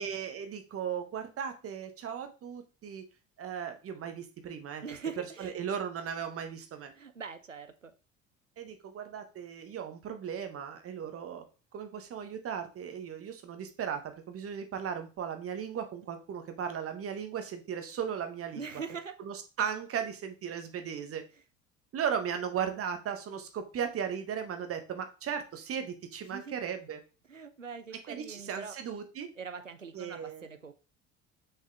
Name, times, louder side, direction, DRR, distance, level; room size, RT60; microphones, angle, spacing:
voice 1, 0.0-3.1 3.4-4.8 5.4-6.9 8.6-11.4 11.7-18.6 19.2-21.2 21.9-27.0 28.1-29.3 29.9-30.5, right 8 dB, 35° right, 1.4 m, -36 dB
voice 2, 4.8-5.6 6.9-7.9 18.6-19.2 26.3-26.6 27.3-28.8 29.4-30.7, right 5 dB, 90° right, 0.7 m, -42 dB
6.4 x 6.3 x 3.7 m
figure-of-eight pair, 60°, 37 cm